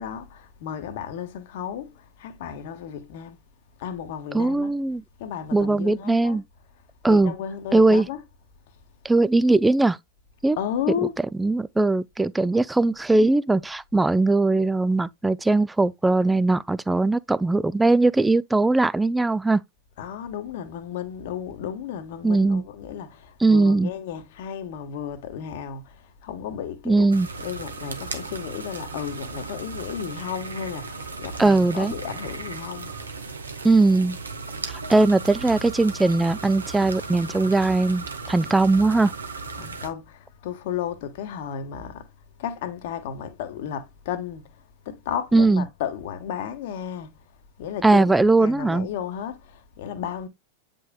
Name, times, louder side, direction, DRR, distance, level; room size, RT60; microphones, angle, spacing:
voice 1, 0.0-3.4 3.8-4.7 5.2-6.4 7.1-8.3 10.5-11.1 20.0-27.1 27.4-32.9 39.6-42.1 42.4-44.6 44.8-47.1 47.6-50.3, left 8 dB, 50° left, 1.0 m, -33 dB
voice 2, 4.3-5.0 5.5-6.4 7.0-7.3 7.7-8.1 9.0-10.0 10.4-10.6 11.4-19.6 22.2-22.6 23.4-23.9 26.9-27.3 31.4-31.9 33.6-34.2 34.9-39.1 45.3-45.7 47.8-48.9, right 2 dB, 5° right, 0.3 m, -20 dB
sound 1, 27.1-39.9, right 4 dB, 75° right, 0.9 m, -36 dB
8.7 x 5.3 x 2.2 m
figure-of-eight pair, 90°, 0 cm